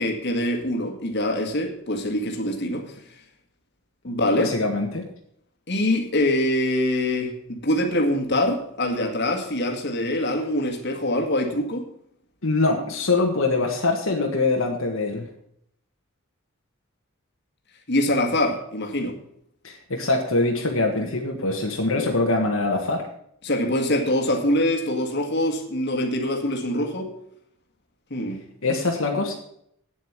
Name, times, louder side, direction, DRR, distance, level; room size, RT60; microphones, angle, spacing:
voice 1, 0.0-2.9 4.0-4.5 5.7-11.8 17.9-19.1 23.4-27.1 28.1-28.4, left 1 dB, 55° left, 2 dB, 1.9 m, -24 dB
voice 2, 4.4-5.0 12.4-15.2 19.6-23.1 28.6-29.3, left 3 dB, 70° left, 1 dB, 1.6 m, -23 dB
9.2 x 7.9 x 7.3 m, 0.70 s
head